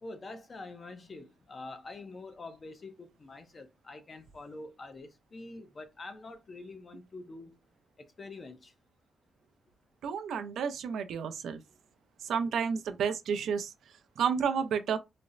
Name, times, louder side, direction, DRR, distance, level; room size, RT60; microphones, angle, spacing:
voice 1, 0.0-7.6 8.0-8.7, left 2 dB, 30° left, 0.5 m, -46 dB
voice 2, 10.0-11.6 12.2-13.7 14.2-15.0, right 6 dB, 90° right, 0.4 m, -31 dB
4.0 x 2.0 x 2.4 m
wide cardioid pair, 160°, 0 cm